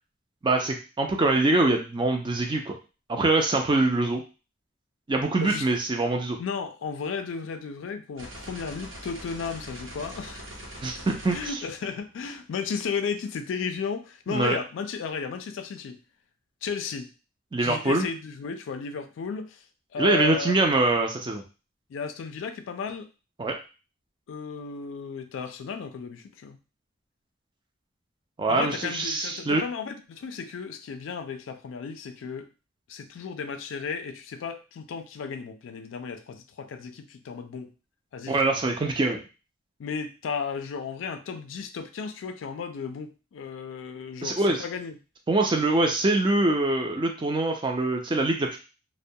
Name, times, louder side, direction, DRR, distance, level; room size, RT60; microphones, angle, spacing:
voice 1, 0.4-2.8 3.1-4.2 5.1-6.4 10.8-11.4 14.3-14.6 17.5-18.1 20.0-21.4 23.4-23.6 28.4-29.6 38.3-39.2 44.2-44.6 45.3-48.6, right 2 dB, 25° right, 3 dB, 0.4 m, -24 dB
voice 2, 6.4-10.5 11.3-16.0 16.6-17.1 17.6-19.7 19.9-20.5 21.9-23.1 24.3-26.6 28.5-32.5 32.9-37.7 38.1-38.6 38.8-38.9 39.8-45.0, left 5 dB, 75° left, 8 dB, 0.3 m, -34 dB
sound 1, 8.2-12.4, equal, 85° right, 0.9 m, -42 dB
2.2 x 2.1 x 2.6 m, 0.32 s
head